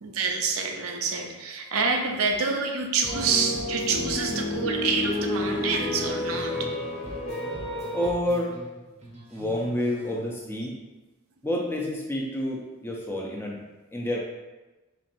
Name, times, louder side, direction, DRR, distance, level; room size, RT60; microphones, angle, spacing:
voice 1, 0.0-6.6, right 4 dB, 80° right, 3 dB, 0.5 m, -27 dB
sound 1, 3.0-6.8 7.0-10.2, right 1 dB, 30° right, 0.7 m, -44 dB
sound 2, 3.1-8.1, left 1 dB, 70° left, 1.0 m, -30 dB
voice 2, 7.9-8.5 9.3-10.8 11.4-13.6 13.9-14.2, left 1 dB, 10° left, -2 dB, 0.5 m, -29 dB
4.4 x 3.1 x 2.5 m, 1.1 s
head